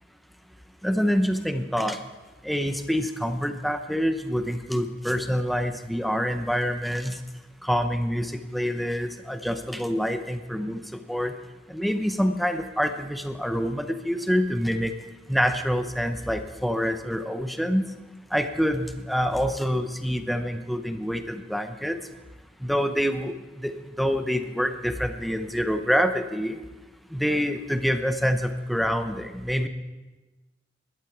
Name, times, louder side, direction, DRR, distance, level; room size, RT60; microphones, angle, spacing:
voice 1, 0.8-2.0 2.4-7.2 7.6-10.8 11.1-11.3 11.7-14.9 15.3-17.9 18.3-22.0 22.6-26.6 27.1-29.7, equal, ahead, 7 dB, 0.8 m, -26 dB
19.5 x 12.0 x 4.6 m, 1.2 s
head